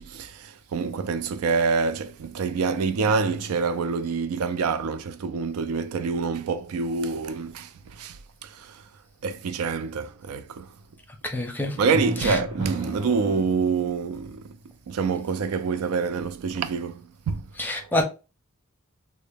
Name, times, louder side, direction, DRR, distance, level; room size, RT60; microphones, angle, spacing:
voice 1, 0.0-8.8 9.2-10.7 11.8-14.6 14.9-17.4 17.7-17.9, right 5 dB, 75° right, 0.4 m, -27 dB
voice 2, 11.2-11.8 12.2-12.3 17.6-18.0, left 1 dB, 10° left, 0.6 m, -26 dB
Drum, 11.9-14.0, right 1 dB, 25° right, 1.8 m, -33 dB
3.6 x 2.0 x 3.4 m
head